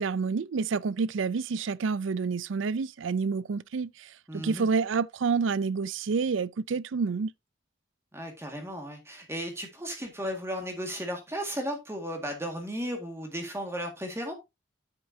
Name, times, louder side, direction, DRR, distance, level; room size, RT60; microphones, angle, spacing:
voice 1, 0.0-7.3, right 5 dB, 80° right, 0.4 m, -28 dB
voice 2, 4.3-4.7 8.1-14.3, equal, 15° right, 1.9 m, -35 dB
9.8 x 8.0 x 2.7 m
head